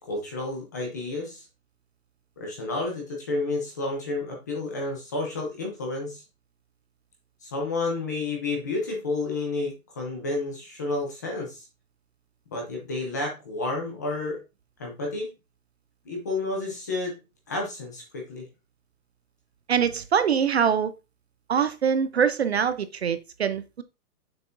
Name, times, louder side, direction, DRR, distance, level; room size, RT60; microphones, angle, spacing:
voice 1, 0.1-1.4 2.4-6.2 7.4-11.7 12.5-14.4 14.8-15.3 16.1-17.2 17.5-18.4, left 2 dB, 10° left, 0.6 m, -30 dB
voice 2, 19.7-20.9 21.5-23.8, right 7 dB, 45° right, 0.5 m, -24 dB
6.8 x 6.5 x 2.6 m
hypercardioid pair, 170°, 45 cm